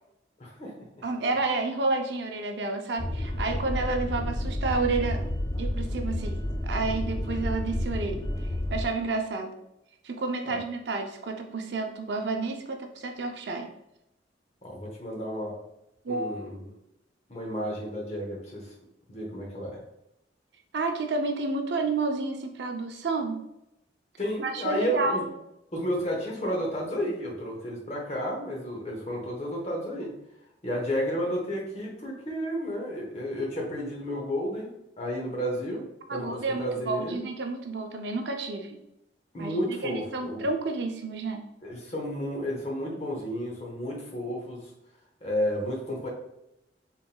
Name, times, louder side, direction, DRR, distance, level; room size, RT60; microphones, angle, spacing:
voice 1, 0.4-0.7 10.5-10.6 14.6-15.6 16.1-16.7 17.3-18.7 19.1-19.8 24.2-25.3 25.7-30.1 30.6-35.8 36.1-37.3 39.3-40.5 41.6-44.7 45.2-46.1, equal, 35° left, -1 dB, 1.0 m, -32 dB
voice 2, 1.0-5.2 5.6-8.2 8.7-9.5 10.0-13.7 16.0-16.4 20.7-23.4 24.4-25.2 36.1-38.8 39.4-41.4, right 3 dB, 70° right, 3 dB, 0.5 m, -30 dB
sound 1, 3.0-8.8, left 1 dB, 20° left, 0.4 m, -30 dB
3.9 x 3.8 x 2.2 m, 0.85 s
head